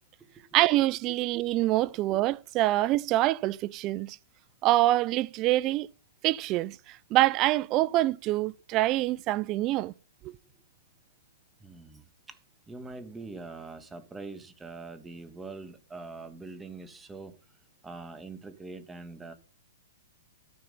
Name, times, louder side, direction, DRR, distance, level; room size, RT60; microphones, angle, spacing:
voice 1, 0.5-4.2 4.6-5.9 6.2-9.9 10.2-10.3, right 16 dB, 35° right, 0.4 m, -25 dB
voice 2, 11.6-12.0 12.7-17.3 17.8-19.3, right 3 dB, 10° right, 1.4 m, -43 dB
13.0 x 5.8 x 5.3 m
hypercardioid pair, 130°, 0 cm